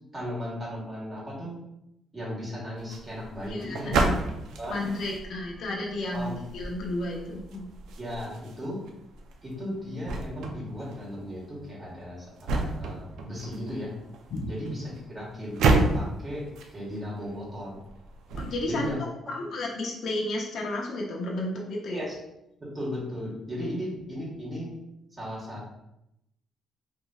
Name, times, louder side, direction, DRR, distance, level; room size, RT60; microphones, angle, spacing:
voice 1, 0.1-1.6 2.1-4.0 4.6-4.8 6.1-6.4 8.0-8.8 9.4-13.9 14.5-15.6 15.9-17.8 18.7-19.1 21.9-22.1 22.6-24.7 25.1-25.7, equal, 25° right, -5 dB, 1.4 m, -36 dB
sound 1, 2.8-18.9, right 3 dB, 85° right, 0.4 m, -32 dB
voice 2, 3.5-4.2 4.7-7.7 14.3-14.5 18.4-18.8 19.3-22.0, left 1 dB, 65° left, -2 dB, 0.6 m, -32 dB
3.0 x 2.6 x 2.3 m, 0.84 s
cardioid pair, 90°, 0 cm